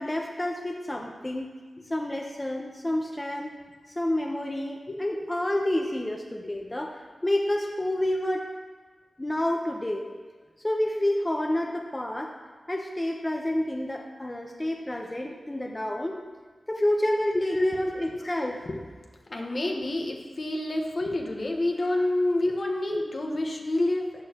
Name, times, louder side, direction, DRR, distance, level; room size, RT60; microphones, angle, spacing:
voice 1, 0.0-1.5 1.9-3.5 3.9-8.5 9.2-10.1 10.6-12.3 12.7-16.2 16.7-18.5, left 1 dB, 20° left, 1 dB, 1.0 m, -29 dB
voice 2, 17.5-17.9 18.2-18.3 18.7-18.8 19.3-24.2, left 1 dB, 55° left, 1 dB, 1.3 m, -28 dB
14.0 x 8.1 x 3.0 m, 1.4 s
cardioid pair, 55°, 0 cm